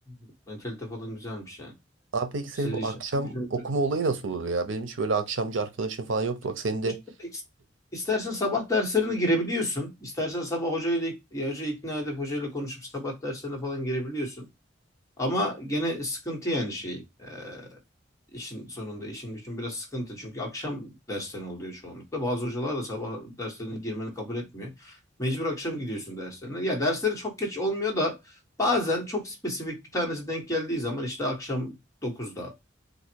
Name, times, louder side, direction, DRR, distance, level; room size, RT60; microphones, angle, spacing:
voice 1, 0.5-1.7 2.6-2.9 3.2-3.5 7.9-14.5 15.2-17.7 18.3-24.9 25.2-28.2 28.6-31.7 32.0-32.5, left 1 dB, 15° left, 1.4 m, -30 dB
voice 2, 2.1-7.0, right 3 dB, 85° right, 0.7 m, -29 dB
3.9 x 2.5 x 4.5 m
head